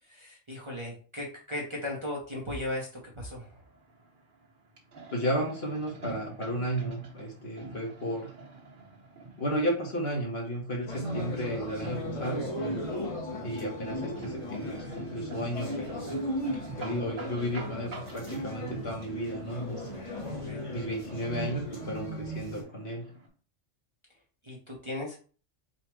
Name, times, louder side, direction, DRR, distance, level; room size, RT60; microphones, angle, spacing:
voice 1, 0.0-3.6 16.8-17.0 20.2-20.7 24.4-25.2, left 1 dB, 25° right, -3 dB, 0.9 m, -37 dB
sound 1, 3.4-23.3, right 3 dB, 40° right, 1.3 m, -47 dB
voice 2, 5.1-8.3 9.4-12.5 13.4-16.4 16.7-19.9 20.7-23.0, equal, 50° left, -2 dB, 1.5 m, -33 dB
sound 2, 10.9-22.6, equal, 30° left, 0.9 m, -37 dB
4.0 x 2.4 x 4.5 m, 0.39 s
omnidirectional pair, 1.3 m